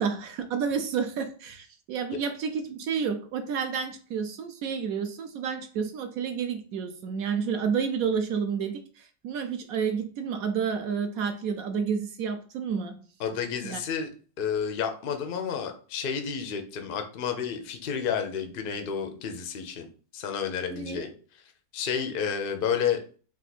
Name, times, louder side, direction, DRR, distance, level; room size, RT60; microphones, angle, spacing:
voice 1, 0.0-13.0 13.6-13.8 20.7-21.0, right 6 dB, 70° right, 7 dB, 0.9 m, -30 dB
voice 2, 13.2-14.1 14.4-19.9 20.1-21.1 21.7-23.0, left 7 dB, 75° left, 6 dB, 0.5 m, -30 dB
3.6 x 2.6 x 4.1 m, 0.40 s
omnidirectional pair, 1.8 m